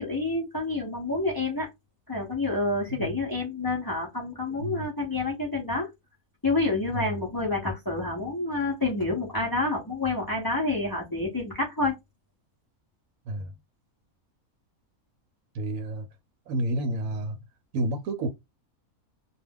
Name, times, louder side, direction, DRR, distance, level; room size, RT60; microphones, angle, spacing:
voice 1, 0.0-1.7 2.1-5.9 6.4-11.9, left 2 dB, 25° left, 0.4 m, -28 dB
voice 2, 15.5-16.1 16.5-17.4 17.7-18.3, right 1 dB, 70° right, 1.0 m, -30 dB
2.5 x 2.3 x 3.3 m
omnidirectional pair, 1.5 m